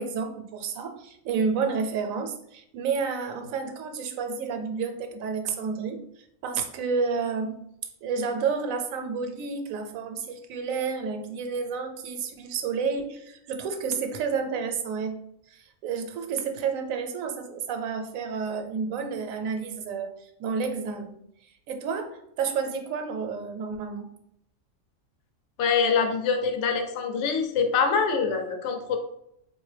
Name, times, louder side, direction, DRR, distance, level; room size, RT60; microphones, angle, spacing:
voice 1, 0.0-6.0 6.4-7.6 8.0-15.2 15.5-21.2 21.7-24.1, right 5 dB, 85° right, 5 dB, 1.0 m, -30 dB
voice 2, 25.6-29.0, left 5 dB, 70° left, 5 dB, 0.8 m, -24 dB
3.7 x 2.5 x 3.2 m, 0.77 s
omnidirectional pair, 1.4 m